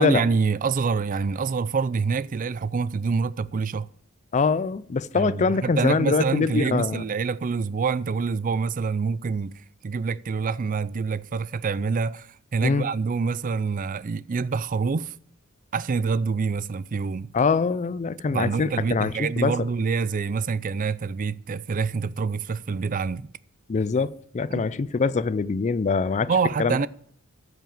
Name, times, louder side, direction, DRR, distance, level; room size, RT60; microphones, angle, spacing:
voice 1, 0.0-3.9 5.1-9.5 9.8-15.1 15.7-17.3 18.3-23.3 24.5-24.7 26.3-26.9, right 5 dB, 40° right, 0.4 m, -26 dB
voice 2, 4.3-7.0 12.6-12.9 17.3-19.5 23.7-26.3 26.6-26.8, left 4 dB, 35° left, 0.4 m, -23 dB
13.5 x 5.9 x 7.2 m
head